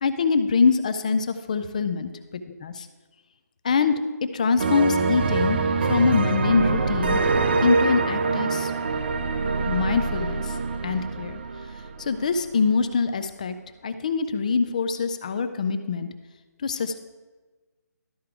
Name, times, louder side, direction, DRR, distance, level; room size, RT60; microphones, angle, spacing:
voice 1, 0.0-2.9 3.6-4.0 4.3-5.6 5.9-7.2 7.6-8.7 9.7-10.5 10.8-11.4 12.0-13.5 13.8-16.1 16.6-17.0, left 5 dB, 25° left, 10 dB, 0.4 m, -24 dB
sound 1, 4.6-12.2, right 4 dB, 35° right, 0.4 m, -24 dB
12.5 x 4.8 x 4.7 m, 1.3 s
hypercardioid pair, 170°, 9 cm